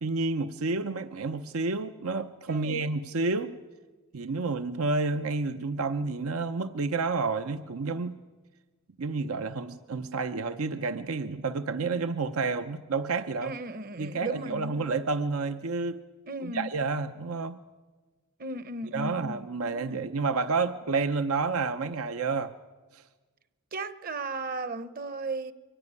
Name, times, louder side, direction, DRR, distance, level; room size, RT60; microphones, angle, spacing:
voice 1, 0.0-3.6 4.1-8.2 9.0-13.5 14.0-16.0 16.4-17.6 18.9-22.5 22.9-23.0, right 4 dB, 85° right, 0.7 m, -30 dB
voice 2, 2.5-2.8 13.4-14.8 16.3-16.7 18.4-20.0 23.7-25.5, right 2 dB, 40° right, 0.9 m, -36 dB
24.0 x 16.0 x 9.6 m
head